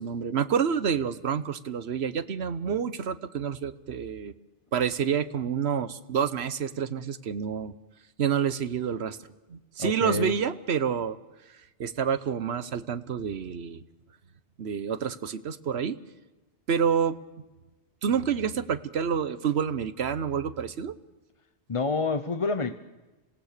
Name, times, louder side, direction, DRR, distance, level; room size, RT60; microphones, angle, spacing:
voice 1, 0.0-4.3 4.7-7.7 8.2-9.2 9.5-11.2 11.8-13.8 14.6-16.0 16.7-17.1 18.0-20.9, right 7 dB, 70° right, 15 dB, 1.1 m, -28 dB
voice 2, 9.8-10.3 21.7-22.7, left 4 dB, 30° left, 11 dB, 0.8 m, -28 dB
26.5 x 18.0 x 6.6 m, 1.1 s
omnidirectional pair, 1.2 m